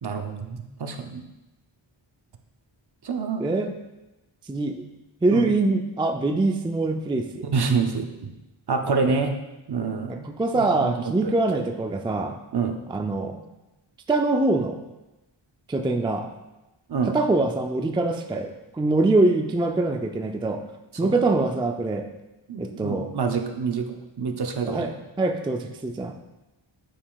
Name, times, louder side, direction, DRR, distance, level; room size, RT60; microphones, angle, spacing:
voice 1, 0.0-1.3 3.0-3.5 5.3-5.5 7.5-8.3 8.7-9.4 9.7-10.3 10.5-11.3 12.5-12.8 16.9-17.1 21.0-21.2 22.5-24.9, right 5 dB, 50° right, 5 dB, 0.7 m, -27 dB
voice 2, 3.4-3.7 4.5-4.9 5.2-7.5 9.0-9.1 10.1-12.4 12.9-13.4 14.1-14.8 15.7-16.3 17.1-20.6 21.0-22.1 22.6-23.1 24.6-24.9 25.2-26.2, right 2 dB, 10° right, 5 dB, 0.3 m, -24 dB
8.7 x 4.9 x 2.3 m, 1.0 s
wide cardioid pair, 75°, 50 cm